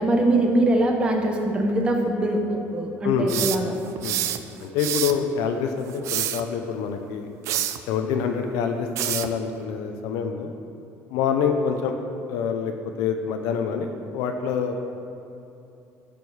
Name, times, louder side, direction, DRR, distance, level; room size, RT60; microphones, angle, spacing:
voice 1, 0.0-3.8, right 1 dB, 15° right, 2 dB, 0.8 m, -22 dB
voice 2, 3.0-3.5 4.0-4.2 4.6-7.3 7.9-10.5 11.1-12.0 12.3-14.8, left 6 dB, 85° left, 5 dB, 0.7 m, -26 dB
sound 1, 3.3-4.4 4.8-5.2 5.9-6.4 7.5-7.8 9.0-9.3, right 12 dB, 60° right, 0.5 m, -27 dB
11.0 x 5.2 x 6.3 m, 2.7 s
cardioid pair, 150°, 6 cm